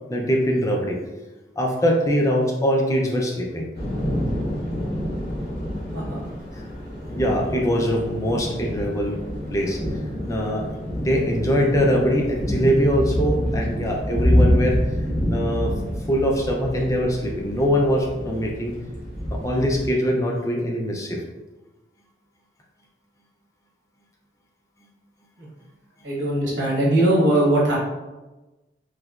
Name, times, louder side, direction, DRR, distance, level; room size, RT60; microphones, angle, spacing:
voice 1, 0.1-1.0 1.6-3.7 7.2-9.2 9.5-9.8 10.3-10.6 11.0-14.8 15.3-15.7 16.1-18.8 19.3-21.2, equal, 15° left, -1 dB, 0.4 m, -22 dB
Thunder / Rain, 3.7-19.9, equal, 55° left, 1.2 m, -27 dB
voice 2, 26.0-27.8, right 1 dB, 80° right, -4 dB, 1.0 m, -20 dB
3.2 x 2.8 x 2.3 m, 1.1 s
head